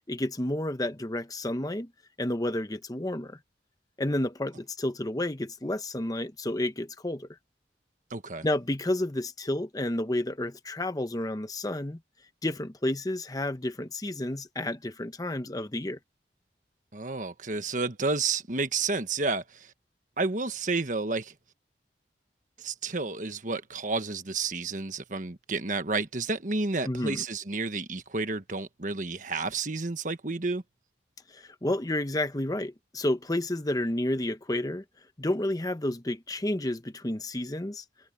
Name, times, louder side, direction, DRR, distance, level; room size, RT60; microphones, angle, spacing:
voice 1, 0.1-1.9 2.2-3.4 4.0-7.3 8.4-12.0 12.4-16.0 26.9-27.2 31.3-34.8 35.2-37.8, left 1 dB, 20° left, 0.9 m, -30 dB
voice 2, 8.1-8.5 16.9-19.7 20.2-21.3 22.6-30.6, right 3 dB, 45° right, 1.4 m, -31 dB
head